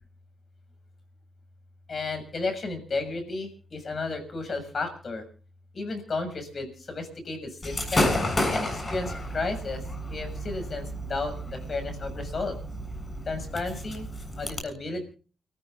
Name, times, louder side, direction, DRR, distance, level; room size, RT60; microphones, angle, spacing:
voice 1, 1.9-5.2 5.7-8.1 8.5-9.8 10.1-12.6 13.3-14.1 14.4-15.1, left 3 dB, 55° left, 6 dB, 6.8 m, -33 dB
Gunshot gunfire / Fireworks, 7.6-14.6, left 1 dB, 35° left, 7.4 m, -31 dB
30.0 x 14.5 x 2.8 m, 0.39 s
supercardioid pair, 45°, 0 cm